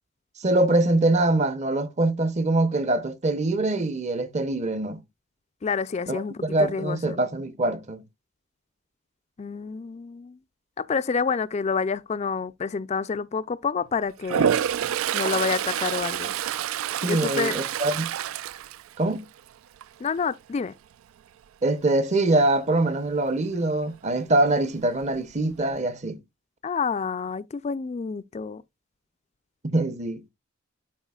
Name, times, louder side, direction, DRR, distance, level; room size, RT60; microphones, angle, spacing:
voice 1, 0.4-5.0 6.1-8.0 17.0-18.1 19.0-19.3 21.6-26.2 29.6-30.2, right 2 dB, 35° right, 0.7 m, -24 dB
voice 2, 5.6-7.2 9.4-10.4 10.8-14.5 15.1-16.3 17.1-17.6 20.0-20.7 26.6-28.6, left 5 dB, 30° left, 0.3 m, -28 dB
Toilet flush, 14.2-19.4 19.8-20.2 24.6-24.7 25.0-25.8, right 9 dB, 85° right, 0.3 m, -28 dB
12.0 x 4.9 x 2.3 m
head